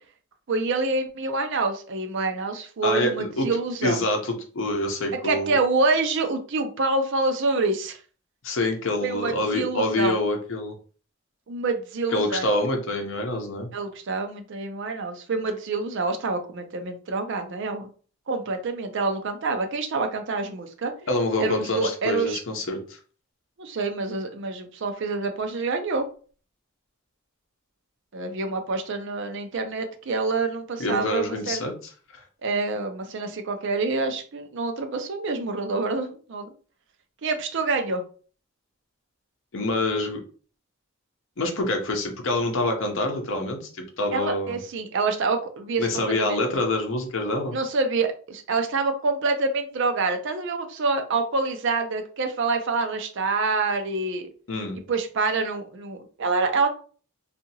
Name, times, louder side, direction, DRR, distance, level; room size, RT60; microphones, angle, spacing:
voice 1, 0.5-4.0 5.2-8.0 9.0-10.2 11.5-12.5 13.7-17.9 18.3-20.9 21.4-22.4 23.6-26.1 28.1-31.6 32.4-36.5 37.2-38.0 44.1-46.4 47.5-54.3 54.9-56.7, right 3 dB, 60° right, 6 dB, 0.5 m, -26 dB
voice 2, 2.8-3.5 3.8-5.6 8.4-10.7 12.1-13.7 21.1-22.8 30.8-31.7 39.5-40.2 41.4-44.6 45.8-47.5 54.5-54.8, left 2 dB, 65° left, 3 dB, 0.7 m, -26 dB
2.8 x 2.4 x 2.7 m, 0.40 s
head